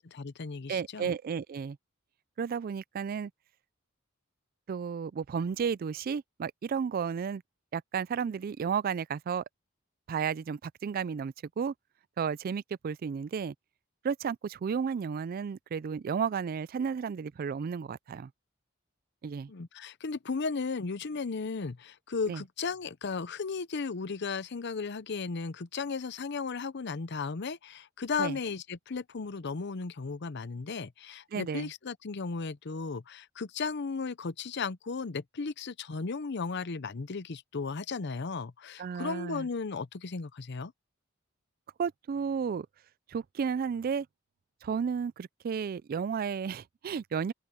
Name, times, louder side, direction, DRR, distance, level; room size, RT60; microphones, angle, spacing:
voice 1, 0.0-1.1 19.5-40.7, left 4 dB, 60° left, 0.7 m, -35 dB
voice 2, 0.7-1.8 2.4-3.3 4.7-7.4 7.7-9.4 10.1-11.7 12.2-13.5 14.0-18.3 19.2-19.5 22.3-22.4 28.2-28.4 31.3-31.7 38.8-39.5 41.8-42.7 43.1-44.1 44.6-47.3, right 6 dB, 45° right, 0.3 m, -33 dB
open air
head